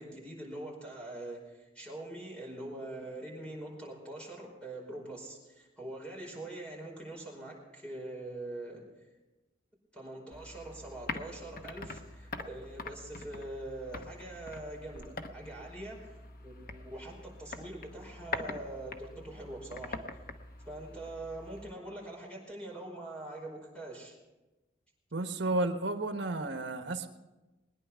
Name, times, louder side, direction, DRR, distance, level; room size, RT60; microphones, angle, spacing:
voice 1, 0.0-8.8 9.9-16.2 16.4-20.1 20.6-24.2, right 1 dB, 5° left, -2 dB, 5.1 m, -43 dB
sound 1, 10.3-21.7, left 3 dB, 50° left, 1.0 m, -44 dB
voice 2, 25.1-27.1, right 2 dB, 75° right, 7 dB, 1.3 m, -32 dB
21.5 x 10.0 x 5.7 m, 1.1 s
head